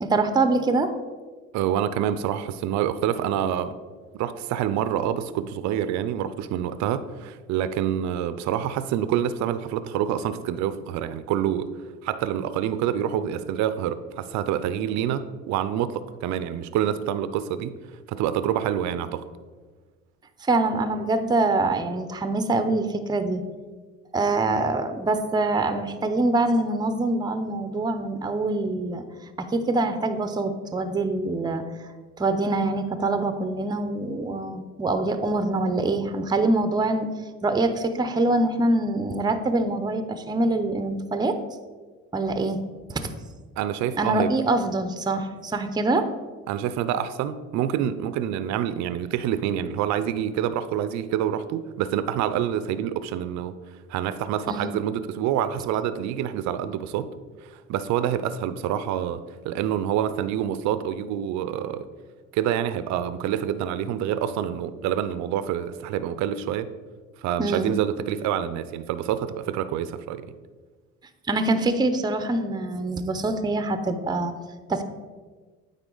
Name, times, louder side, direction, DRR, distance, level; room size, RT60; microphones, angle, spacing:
voice 1, 0.0-0.9 20.4-23.4 24.1-29.0 29.4-31.6 32.2-37.1 37.4-41.4 42.1-42.6 42.9-43.1 44.0-46.1 54.5-54.8 67.4-67.7 71.3-74.3 74.7-74.8, right 2 dB, 15° right, 0.5 m, -24 dB
voice 2, 1.5-3.8 4.1-11.7 12.0-17.7 18.1-19.2 43.6-44.3 46.5-53.6 53.9-57.1 57.4-61.9 62.3-66.7 67.2-70.3, right 10 dB, 70° right, 0.5 m, -27 dB
8.9 x 3.8 x 3.8 m
supercardioid pair, 90°, 30 cm